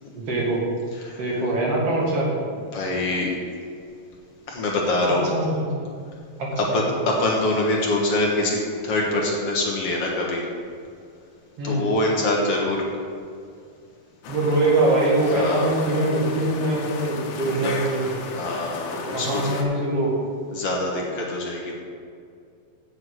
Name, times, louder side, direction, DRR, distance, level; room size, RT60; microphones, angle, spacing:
voice 1, 0.1-0.6 1.2-2.3 5.3-5.7 6.4-7.1 11.6-11.9 14.3-18.1 19.1-20.1, right 2 dB, 45° right, -4 dB, 2.6 m, -23 dB
voice 2, 2.7-3.3 4.5-5.3 6.6-10.4 11.6-12.8 15.3-15.7 17.0-17.1 17.5-17.7 18.3-19.6 20.5-21.8, left 2 dB, 55° left, -2 dB, 1.9 m, -24 dB
sound 1, 14.2-19.6, left 4 dB, 90° left, 3.0 m, -35 dB
8.1 x 7.3 x 7.7 m, 2.3 s
omnidirectional pair, 4.3 m